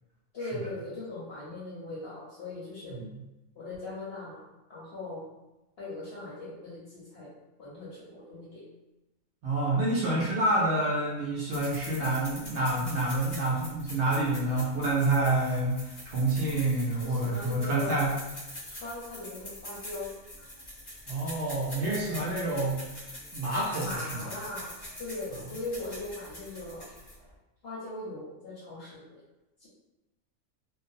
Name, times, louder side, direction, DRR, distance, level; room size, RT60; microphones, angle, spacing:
voice 1, 0.3-3.0 3.6-4.4 4.7-5.2 5.8-7.3 7.6-8.6 17.0-18.0 18.7-20.1 20.4-20.5 23.8-24.7 25.0-26.8 27.6-29.2 29.6-29.7, left 2 dB, 60° left, -7 dB, 0.7 m, -39 dB
voice 2, 9.4-18.1 21.1-22.8 23.3-23.9, right 2 dB, 65° right, -5 dB, 0.7 m, -28 dB
sound 1, 11.5-27.3, left 1 dB, 40° left, 0.3 m, -44 dB
2.5 x 2.0 x 2.5 m, 1.0 s
omnidirectional pair, 1.5 m